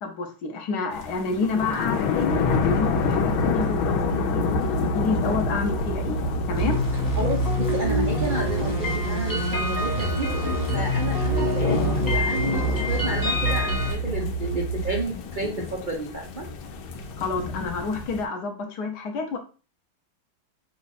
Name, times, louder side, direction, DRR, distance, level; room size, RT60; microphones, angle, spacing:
voice 1, 0.0-6.2 6.5-6.8 17.2-19.4, left 4 dB, 65° left, 3 dB, 1.2 m, -29 dB
sound 1, 0.9-18.2, left 7 dB, 85° left, 1.5 m, -30 dB
sound 2, 2.2-15.0, right 4 dB, 50° right, 0.9 m, -30 dB
sound 3, 6.5-13.9, left 1 dB, 20° left, 0.5 m, -26 dB
voice 2, 7.2-16.5, right 2 dB, 75° right, -1 dB, 0.4 m, -31 dB
5.5 x 2.4 x 4.0 m, 0.35 s
omnidirectional pair, 2.2 m